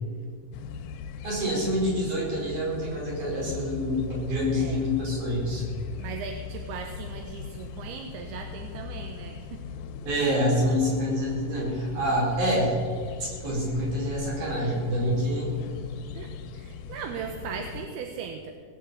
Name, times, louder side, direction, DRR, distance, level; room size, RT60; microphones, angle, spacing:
sound 1, 0.5-17.9, left 7 dB, 75° left, 2.3 m, -40 dB
voice 1, 1.2-5.7 10.0-12.7 13.2-15.6, equal, 50° right, -4 dB, 5.9 m, -27 dB
voice 2, 4.5-4.9 6.0-9.6 16.1-18.5, right 6 dB, 80° right, 5 dB, 2.7 m, -38 dB
18.5 x 8.3 x 7.7 m, 2.2 s
omnidirectional pair, 4.7 m